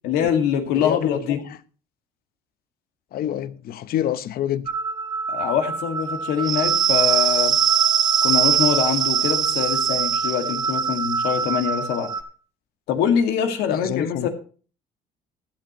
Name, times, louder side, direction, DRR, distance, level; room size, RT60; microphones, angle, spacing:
voice 1, 0.0-1.4 5.3-7.5 8.2-12.1 12.9-14.3, left 8 dB, 90° left, 2.1 m, -24 dB
voice 2, 0.7-1.4 3.1-4.7 13.7-14.3, left 11 dB, 60° left, 0.8 m, -27 dB
sound 1, 4.7-12.2, right 7 dB, 25° right, 1.4 m, -22 dB
16.0 x 10.0 x 3.0 m
cardioid pair, 110°, 17 cm